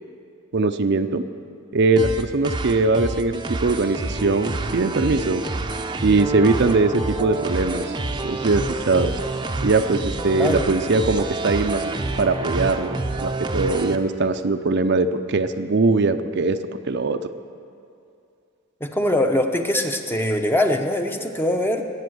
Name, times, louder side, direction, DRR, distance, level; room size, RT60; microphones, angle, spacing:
voice 1, 0.5-1.2 1.7-5.4 6.0-7.9 8.2-9.1 9.6-16.6 16.8-17.3, right 3 dB, 60° right, 9 dB, 0.6 m, -21 dB
sound 1, 2.0-14.0, right 2 dB, 20° right, 0.7 m, -28 dB
voice 2, 10.3-10.7 18.8-21.8, left 1 dB, 10° left, 5 dB, 0.8 m, -22 dB
20.5 x 8.1 x 7.8 m, 2.5 s
head